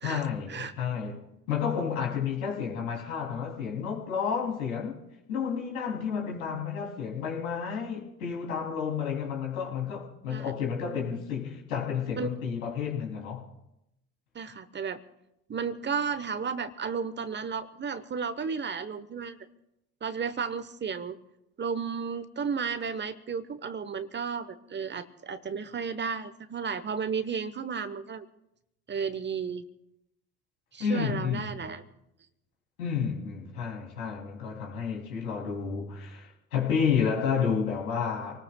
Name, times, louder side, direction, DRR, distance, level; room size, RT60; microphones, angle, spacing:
voice 1, 0.0-5.0 5.3-13.5 30.8-31.7 32.8-38.4, left 7 dB, 75° left, 3.0 m, -31 dB
voice 2, 14.3-15.0 15.5-19.4 20.0-21.2 21.6-28.3 28.9-29.6 30.7-31.8, right 6 dB, 25° right, 1.0 m, -33 dB
27.5 x 19.0 x 2.3 m
figure-of-eight pair, 65°, 44 cm